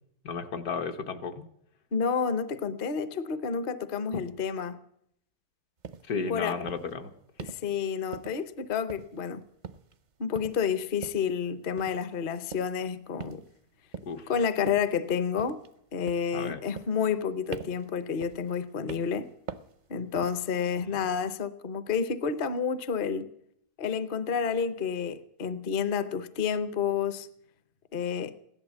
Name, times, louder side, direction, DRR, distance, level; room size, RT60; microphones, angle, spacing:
voice 1, 0.2-1.5 6.1-7.1 14.1-14.3 16.3-16.6 20.9-21.0, left 5 dB, 75° left, 1.6 m, -33 dB
voice 2, 1.9-4.8 6.3-6.6 7.4-9.4 10.2-13.4 14.3-15.6 15.9-19.3 19.9-23.3 23.8-27.3 27.9-28.3, left 6 dB, 45° left, 0.7 m, -30 dB
sound 1, 5.8-6.1 6.7-6.9 7.4-7.7 8.1-8.5 8.9-9.3 9.6-10.0 10.3-10.6 11.0-11.3 11.8-12.0 12.5-12.8 13.2-13.6 13.9-14.2 14.7-15.0 15.4-15.8 16.1-16.4 16.8-17.2 17.5-17.9 18.2-18.5 18.9-19.2 19.5-19.8 20.2-20.5, right 7 dB, 55° right, 0.5 m, -43 dB
16.5 x 11.5 x 7.3 m
omnidirectional pair, 1.6 m